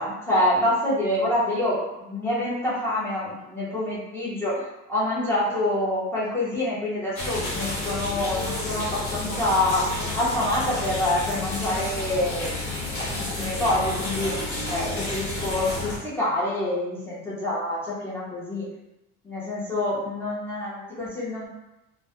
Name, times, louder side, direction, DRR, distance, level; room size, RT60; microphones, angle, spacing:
voice 1, 0.0-9.8 10.1-14.3 14.7-18.7 19.2-21.5, left 1 dB, 5° left, -9 dB, 0.5 m, -26 dB
sound 1, 7.2-16.0, left 2 dB, 45° left, 0.7 m, -30 dB
2.2 x 2.0 x 2.7 m, 0.94 s
cardioid pair, 180°, 32 cm